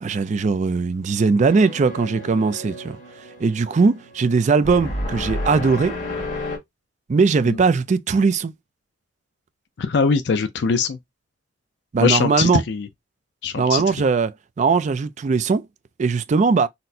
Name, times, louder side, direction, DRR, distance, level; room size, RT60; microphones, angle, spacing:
voice 1, 0.0-3.0 3.4-6.0 7.1-8.5 11.9-12.6 13.6-15.6 16.0-16.7, right 4 dB, 40° right, 0.3 m, -19 dB
sound 1, 1.5-6.6, left 1 dB, 40° left, 1.4 m, -31 dB
voice 2, 9.8-11.0 12.0-12.9 13.4-13.8, left 5 dB, 65° left, 0.4 m, -21 dB
4.2 x 2.1 x 2.6 m
head